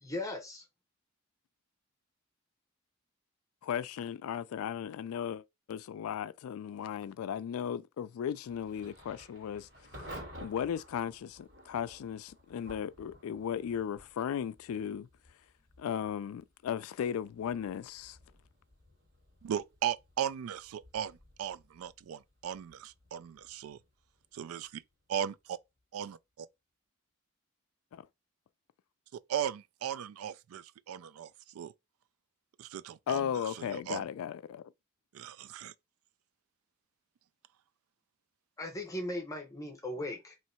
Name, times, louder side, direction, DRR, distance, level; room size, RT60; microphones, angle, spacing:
voice 1, 0.0-0.6 38.6-40.3, left 1 dB, 15° left, 0.8 m, -38 dB
voice 2, 3.6-9.7 10.4-15.1 15.8-18.2 27.9-28.0 33.1-34.6, left 8 dB, 90° left, 0.3 m, -36 dB
Thunder / Rain, 8.5-25.2, equal, 60° right, 2.2 m, -54 dB
voice 3, 19.4-23.8 24.3-24.8 25.1-25.6 25.9-26.5 29.3-31.7 32.6-33.3 33.5-34.1 35.1-35.7, right 9 dB, 85° right, 0.3 m, -37 dB
3.0 x 2.7 x 4.3 m
head